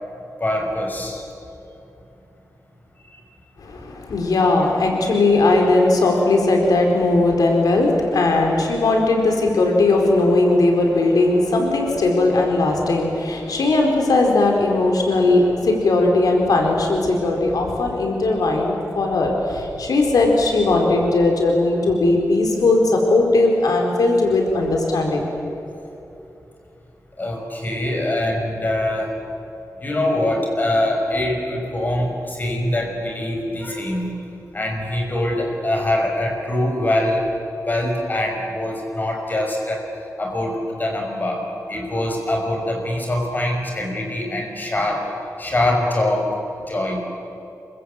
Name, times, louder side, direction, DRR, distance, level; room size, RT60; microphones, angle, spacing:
voice 1, 0.4-1.2 3.1-3.2 27.2-29.1 29.8-34.2 34.5-37.2 37.7-39.8 40.2-41.4 41.7-45.1 45.4-46.3 46.7-47.0, left 1 dB, 30° left, 1 dB, 5.8 m, -23 dB
voice 2, 3.6-25.3, left 2 dB, 90° left, 1 dB, 4.3 m, -18 dB
28.0 x 24.0 x 8.4 m, 2.9 s
wide cardioid pair, 125°, 6 cm